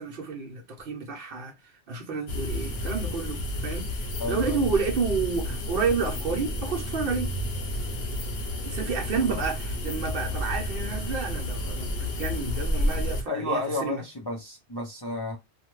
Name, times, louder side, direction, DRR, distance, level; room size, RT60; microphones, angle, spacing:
voice 1, 0.0-7.3 8.6-14.0, right 5 dB, 55° right, 0.8 m, -30 dB
sound 1, 2.3-13.2, left 1 dB, 60° left, 0.9 m, -31 dB
voice 2, 4.2-4.7 9.3-9.4 13.3-15.4, left 2 dB, 30° left, 0.5 m, -32 dB
2.7 x 2.2 x 3.0 m
omnidirectional pair, 1.2 m